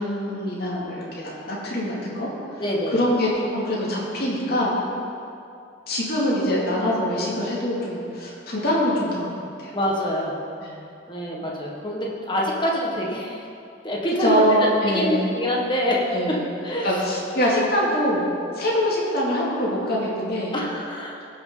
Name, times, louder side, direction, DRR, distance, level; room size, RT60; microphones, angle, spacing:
voice 1, 0.0-2.3 2.9-4.7 5.9-9.8 10.6-10.7 14.2-15.3 16.1-16.4 16.8-18.3 18.5-20.6, equal, 50° left, -5 dB, 2.6 m, -24 dB
voice 2, 2.6-3.1 9.7-10.3 11.1-13.4 13.8-14.4 14.9-16.4 16.6-16.9 20.5-21.2, equal, 25° left, -3 dB, 1.5 m, -25 dB
17.5 x 6.5 x 3.9 m, 2.6 s
head